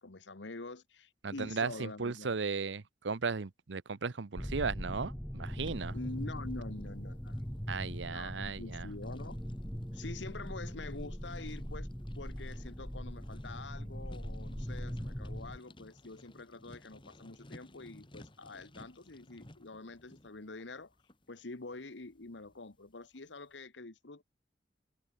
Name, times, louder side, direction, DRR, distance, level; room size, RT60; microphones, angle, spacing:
voice 1, 0.0-2.4 5.9-7.4 8.1-9.4 9.9-11.9 12.2-20.9 21.3-24.2, left 3 dB, 85° left, 1.3 m, -46 dB
voice 2, 1.2-6.0 7.7-8.9, right 4 dB, 90° right, 0.8 m, -36 dB
sound 1, 4.4-15.6, equal, 5° left, 1.4 m, -40 dB
sound 2, 5.6-23.3, left 1 dB, 30° left, 2.4 m, -58 dB
head